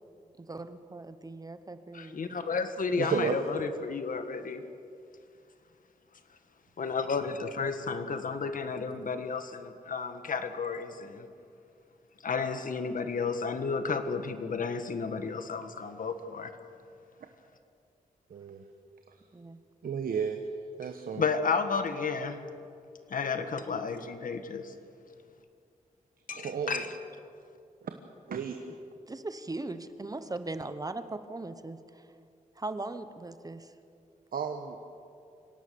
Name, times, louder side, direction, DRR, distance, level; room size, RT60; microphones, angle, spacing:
voice 1, 0.4-2.2 19.3-19.6 29.1-32.1 32.6-33.7, right 2 dB, 25° right, 10 dB, 1.0 m, -39 dB
voice 2, 1.9-4.6 6.8-11.3 12.2-16.5 21.1-22.4 23.1-24.7 26.3-26.9, left 5 dB, 65° left, 8 dB, 1.6 m, -32 dB
voice 3, 3.0-3.5 18.3-18.6 19.8-20.4 20.8-21.3 26.3-26.9 27.8-27.9 28.3-28.6 34.3-34.8, right 6 dB, 80° right, 5 dB, 1.3 m, -32 dB
25.5 x 18.0 x 7.0 m, 2.4 s
wide cardioid pair, 105°, 15 cm